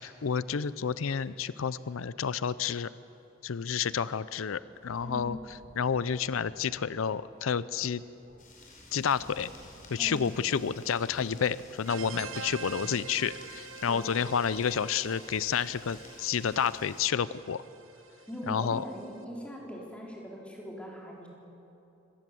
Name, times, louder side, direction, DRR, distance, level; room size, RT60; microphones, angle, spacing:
voice 1, 0.0-2.9 3.4-8.0 8.9-9.5 9.9-17.6 18.5-18.8, left 7 dB, 90° left, 17 dB, 0.5 m, -30 dB
sound 1, 4.6-10.5 10.8-11.7, equal, 45° right, 1.9 m, -58 dB
voice 2, 5.0-5.4 10.0-10.2 18.3-21.3, equal, 5° left, -2 dB, 4.2 m, -40 dB
sound 2, 8.4-17.0, left 2 dB, 40° left, 5.1 m, -52 dB
sound 3, 11.9-19.2, right 5 dB, 85° right, 1.2 m, -45 dB
24.5 x 19.0 x 7.7 m, 2.9 s
head